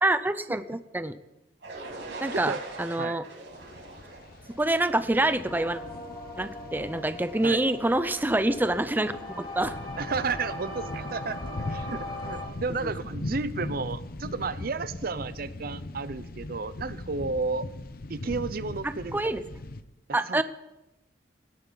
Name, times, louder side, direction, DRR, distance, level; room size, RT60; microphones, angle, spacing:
voice 1, 0.0-1.2 2.2-3.3 4.5-5.8 6.4-9.8 12.8-12.9 18.8-19.4 20.1-20.4, right 1 dB, 10° right, 12 dB, 0.6 m, -26 dB
sound 1, 1.6-5.5, right 2 dB, 80° right, 6.1 m, -41 dB
sound 2, 3.5-19.8, left 2 dB, 55° left, 0.8 m, -40 dB
sound 3, 5.4-12.5, left 1 dB, 25° left, 4.7 m, -40 dB
voice 2, 10.0-11.4 11.7-17.7 18.1-19.3 20.1-20.4, right 4 dB, 55° right, 15 dB, 0.7 m, -32 dB
18.0 x 17.5 x 4.0 m, 0.92 s
head